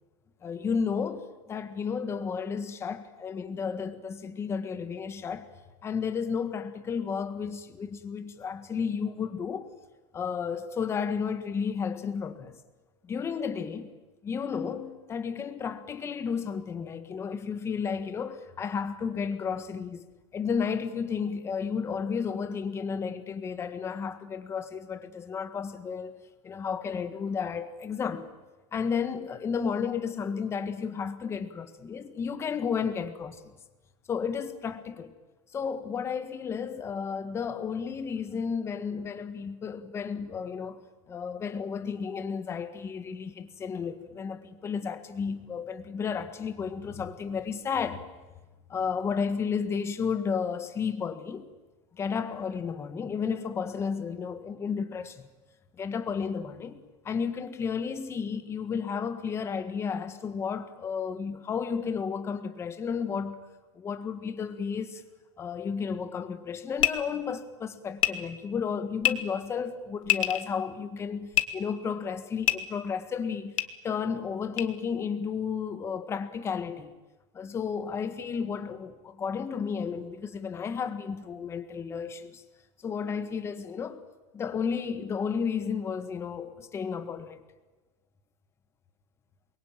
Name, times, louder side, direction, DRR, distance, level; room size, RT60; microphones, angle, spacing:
voice 1, 0.4-5.5 5.8-9.7 10.1-12.6 13.0-13.9 14.2-20.0 20.3-28.3 28.7-33.5 34.1-35.1 35.5-40.8 41.1-48.0 48.7-51.5 52.0-55.3 55.8-63.4 63.7-65.0 65.4-73.6 73.8-76.9 77.3-82.4 82.8-84.0 84.3-87.4, left 6 dB, 15° left, 1.6 m, -32 dB
sound 1, 66.8-66.9 68.0-68.1 69.0-69.1 70.0-70.4 71.3-71.4 72.4-72.6 73.6-73.7 74.6-74.7, left 13 dB, 90° left, 2.1 m, -24 dB
28.5 x 23.0 x 9.2 m
supercardioid pair, 165°, 16 cm